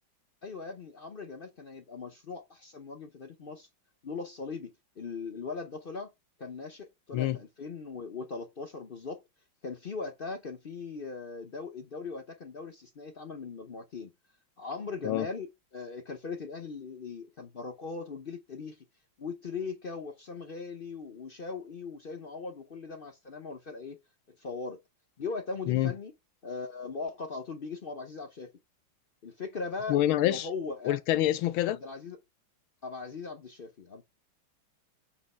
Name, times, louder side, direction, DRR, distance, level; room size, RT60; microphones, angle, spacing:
voice 1, 0.4-3.7 4.0-6.1 6.4-9.2 9.6-14.1 14.6-18.8 19.2-24.0 24.3-24.8 25.2-26.1 26.4-28.5 29.2-31.0 31.7-32.2 32.8-34.0, left 4 dB, 65° left, 0.5 m, -39 dB
voice 2, 29.9-30.5 30.8-31.8, left 14 dB, 80° left, 1.5 m, -26 dB
8.6 x 3.1 x 5.5 m
omnidirectional pair, 2.2 m